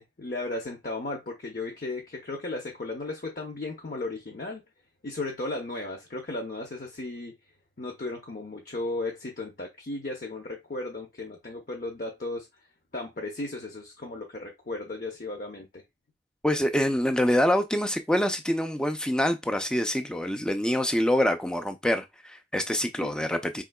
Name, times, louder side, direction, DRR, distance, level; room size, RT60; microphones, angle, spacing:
voice 1, 0.0-4.6 5.0-7.3 7.8-12.5 12.9-15.8 23.0-23.3, left 2 dB, 50° left, 0.8 m, -35 dB
voice 2, 16.4-23.6, equal, 5° left, 0.4 m, -26 dB
5.0 x 3.7 x 2.2 m
head